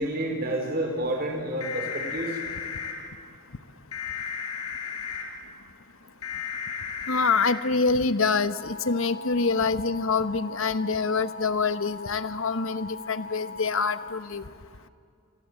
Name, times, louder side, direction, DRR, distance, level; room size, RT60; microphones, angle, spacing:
voice 1, 0.0-2.4, right 1 dB, 40° right, 2 dB, 4.3 m, -29 dB
sound 1, 1.6-2.9 3.9-5.2 6.2-7.5 8.5-14.1, left 6 dB, 80° left, 4.7 m, -36 dB
voice 2, 7.1-14.4, left 4 dB, 60° left, 13 dB, 1.0 m, -26 dB
27.5 x 25.5 x 7.8 m, 2.4 s
head